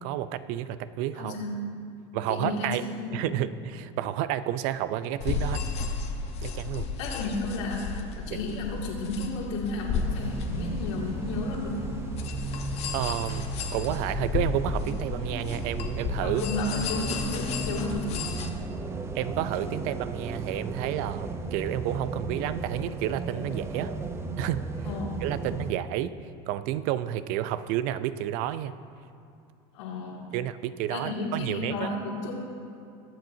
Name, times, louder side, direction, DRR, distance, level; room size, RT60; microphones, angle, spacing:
voice 1, 0.0-1.4 2.1-2.8 3.1-5.6 6.4-6.9 8.3-8.4 12.9-16.4 19.1-23.9 24.4-24.6 25.2-28.8 30.3-31.9, right 12 dB, 65° right, 14 dB, 0.5 m, -30 dB
voice 2, 1.1-1.7 2.3-3.3 7.0-12.0 16.2-18.3 24.8-25.1 29.7-30.3 30.9-32.3, left 2 dB, 85° left, -3 dB, 2.4 m, -33 dB
sound 1, 5.2-18.5, left 5 dB, 45° left, 1.1 m, -33 dB
sound 2, 10.0-25.7, right 3 dB, 15° right, 0.7 m, -35 dB
21.5 x 7.7 x 2.7 m, 2.5 s
supercardioid pair, 120°, 15 cm